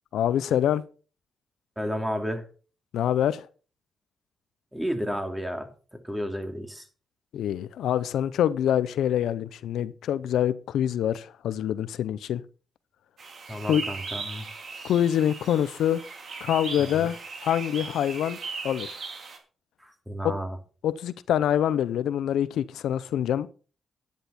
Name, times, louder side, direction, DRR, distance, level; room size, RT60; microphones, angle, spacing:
voice 1, 0.1-0.8 2.9-3.5 7.3-12.4 13.7-13.8 14.8-16.0 16.4-18.4 18.6-19.0 20.2-20.3 20.8-23.5, left 10 dB, 85° left, 0.6 m, -25 dB
voice 2, 1.8-2.5 4.7-5.7 6.0-6.9 13.5-14.4 16.8-17.1 19.8-20.6, equal, 5° right, 2.7 m, -32 dB
sound 1, 13.2-19.4, right 4 dB, 55° right, 2.9 m, -38 dB
10.5 x 10.5 x 4.2 m
cardioid pair, 75°, 0 cm